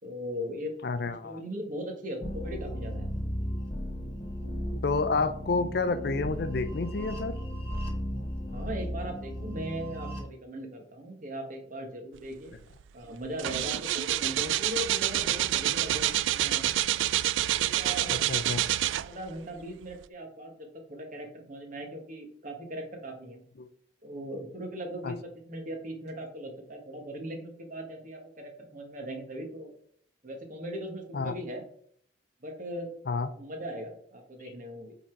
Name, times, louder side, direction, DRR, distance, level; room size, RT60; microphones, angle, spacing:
voice 1, 0.0-0.7 1.2-3.1 8.5-12.5 12.9-16.7 17.5-18.1 19.0-23.4 24.0-29.7 30.2-31.6 32.4-32.9 33.4-35.0, equal, 45° right, 4 dB, 1.5 m, -39 dB
voice 2, 0.8-1.4 4.8-7.3 18.1-18.6 23.6-23.7 25.0-25.1 31.1-31.4 33.1-33.3, left 3 dB, 55° left, 12 dB, 0.5 m, -29 dB
sound 1, 2.2-10.2, equal, 30° left, 1.1 m, -35 dB
sound 2, 12.6-12.8 13.1-19.4 19.9-20.0, right 13 dB, 90° right, 0.3 m, -27 dB
8.4 x 4.0 x 4.5 m, 0.62 s
head